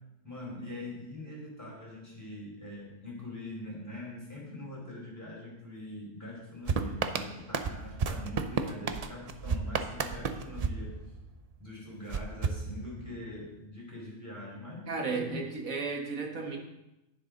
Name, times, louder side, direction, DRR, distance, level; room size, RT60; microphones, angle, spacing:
voice 1, 0.2-11.0 11.6-15.4, left 1 dB, 10° left, -4 dB, 4.4 m, -43 dB
sound 1, 6.7-11.5 12.1-13.3, right 5 dB, 90° right, 0.3 m, -33 dB
voice 2, 14.9-16.6, right 4 dB, 70° right, 2 dB, 1.9 m, -34 dB
10.5 x 9.8 x 3.8 m, 0.92 s
omnidirectional pair, 1.5 m